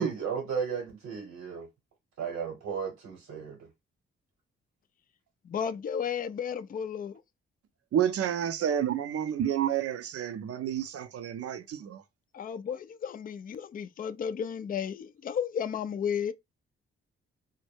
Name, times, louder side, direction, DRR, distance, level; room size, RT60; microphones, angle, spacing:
voice 1, 0.0-1.7 2.2-3.6, right 6 dB, 70° right, 1.0 m, -34 dB
voice 2, 5.4-7.2 12.3-16.3, left 7 dB, 30° left, 0.4 m, -33 dB
voice 3, 7.9-12.0, right 9 dB, 55° right, 0.5 m, -30 dB
2.1 x 2.1 x 3.2 m
hypercardioid pair, 45°, 29 cm